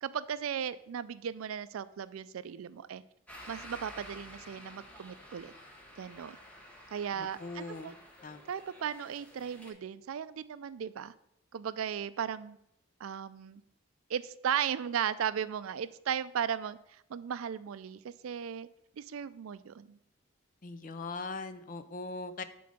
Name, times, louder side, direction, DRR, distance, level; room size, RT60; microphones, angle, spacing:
voice 1, 0.0-3.0 3.5-5.5 6.0-6.4 6.9-7.9 8.5-11.1 11.5-12.6 13.0-13.6 14.1-16.8 17.1-18.7 19.0-20.0, right 8 dB, 85° right, 15 dB, 0.4 m, -36 dB
sound 1, 3.3-9.7, equal, 5° left, 1.0 m, -51 dB
voice 2, 7.2-7.9 8.2-8.4 20.6-22.4, left 3 dB, 40° left, 11 dB, 0.5 m, -40 dB
6.9 x 3.9 x 6.5 m, 0.79 s
head